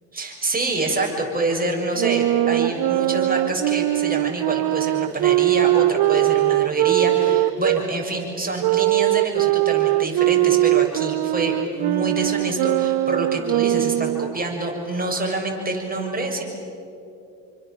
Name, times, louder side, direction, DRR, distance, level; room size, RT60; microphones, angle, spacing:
voice 1, 0.1-16.4, right 2 dB, 20° right, 1 dB, 6.9 m, -26 dB
Wind instrument woodwind instrument, 1.9-7.8 8.6-14.4, right 18 dB, 60° right, 0.5 m, -21 dB
28.5 x 24.5 x 7.4 m, 2.7 s
supercardioid pair, 85°, 41 cm